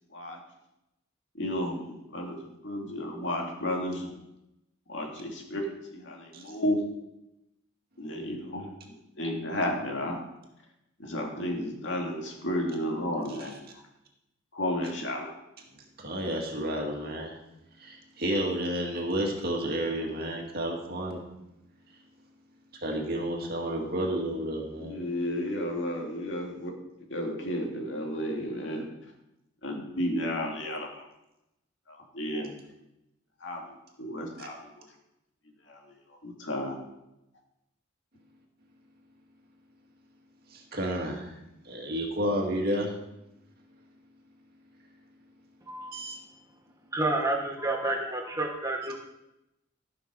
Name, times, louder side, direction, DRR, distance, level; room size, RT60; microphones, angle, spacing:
voice 1, 1.3-4.2 4.9-6.8 8.0-10.2 11.0-13.6 14.5-15.3 24.8-26.7 27.1-28.8 29.6-31.1 31.9-32.5 33.4-34.8 35.7-35.9 36.2-36.8, left 1 dB, 65° left, 1 dB, 2.2 m, -33 dB
voice 2, 16.0-17.4 17.8-21.2 22.8-25.0 34.4-34.5 40.5-41.3 41.6-42.9 45.9-46.2, right 1 dB, 50° right, 0 dB, 2.2 m, -31 dB
voice 3, 46.9-49.0, right 2 dB, 15° right, 2 dB, 1.1 m, -29 dB
13.5 x 5.9 x 6.2 m, 0.89 s
head